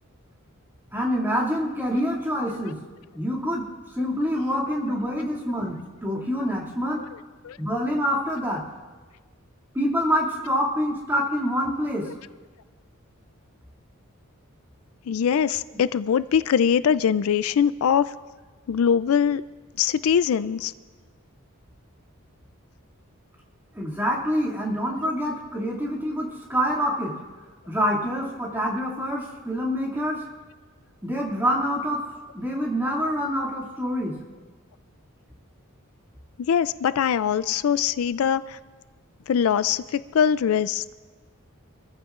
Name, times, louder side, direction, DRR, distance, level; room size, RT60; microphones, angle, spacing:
voice 1, 0.9-2.8 3.1-3.6 4.0-7.0 7.6-8.6 9.7-12.1 23.8-27.1 27.7-30.2 31.0-32.0 32.3-34.1, equal, 10° right, -3 dB, 2.3 m, -26 dB
voice 2, 15.1-18.1 18.7-19.4 19.8-20.7 36.5-38.6 39.3-40.8, left 8 dB, 75° left, 15 dB, 0.4 m, -22 dB
26.0 x 14.5 x 2.5 m, 1.4 s
head